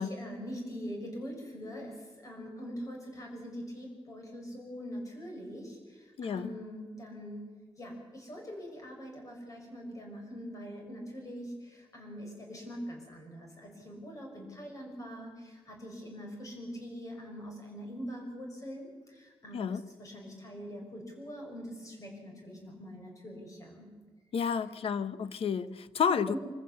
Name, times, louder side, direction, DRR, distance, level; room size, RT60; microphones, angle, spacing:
voice 1, 0.0-7.4 7.8-23.9 26.3-26.4, equal, 35° left, 1 dB, 6.1 m, -43 dB
voice 2, 6.2-6.5 19.5-19.8 24.3-26.3, left 6 dB, 80° left, 14 dB, 0.9 m, -30 dB
24.5 x 15.0 x 7.1 m, 1.5 s
wide cardioid pair, 150°, 10 cm